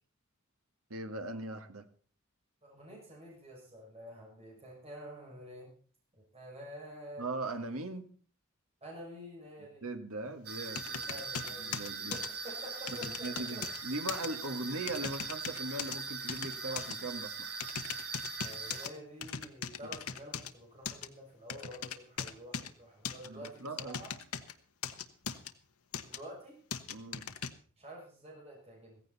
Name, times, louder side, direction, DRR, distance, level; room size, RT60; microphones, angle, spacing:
voice 1, 0.9-1.9 7.2-8.1 9.8-11.2 11.5-12.2 13.0-17.6 23.2-24.0 26.9-27.3, right 2 dB, 75° right, 7 dB, 1.8 m, -40 dB
voice 2, 2.6-5.7 6.3-7.3 8.8-9.8 11.1-11.8 12.1-13.6 18.4-24.1 26.0-26.6 27.8-29.0, equal, 30° right, -2 dB, 6.3 m, -48 dB
sound 1, 10.4-18.9, right 5 dB, 50° right, 4.5 m, -41 dB
sound 2, 10.7-12.3 12.9-13.8 14.1-14.3 14.9-16.0 16.3-16.9 17.6-18.9 19.2-20.5 20.8-21.1 21.5-22.7 23.0-24.5 24.8-25.5 25.9-26.2 26.7-27.5, left 7 dB, 85° left, 1.3 m, -39 dB
16.0 x 15.5 x 4.2 m, 0.42 s
head